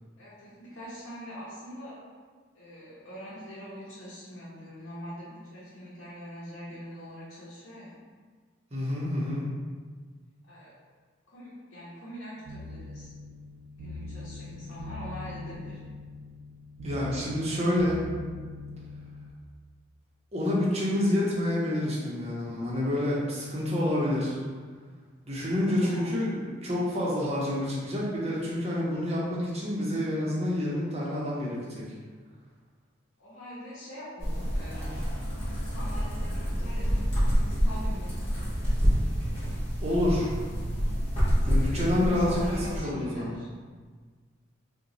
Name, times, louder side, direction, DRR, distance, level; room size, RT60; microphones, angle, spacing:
voice 1, 0.2-2.0 2.5-8.0 10.5-10.7 11.3-13.1 13.7-15.8 25.6-26.1 33.2-35.0 35.6-37.0 37.5-38.7 41.4-43.5, equal, 70° left, -9 dB, 0.7 m, -43 dB
voice 2, 8.7-9.4 16.8-18.0 20.3-24.4 25.2-31.8 39.8-40.3 41.5-43.3, left 1 dB, 35° right, -6 dB, 0.7 m, -28 dB
sound 1, 12.5-19.3, left 2 dB, 75° right, 0.4 m, -42 dB
sound 2, 34.2-42.8, equal, 30° left, 0.8 m, -28 dB
2.9 x 2.2 x 3.9 m, 1.5 s
head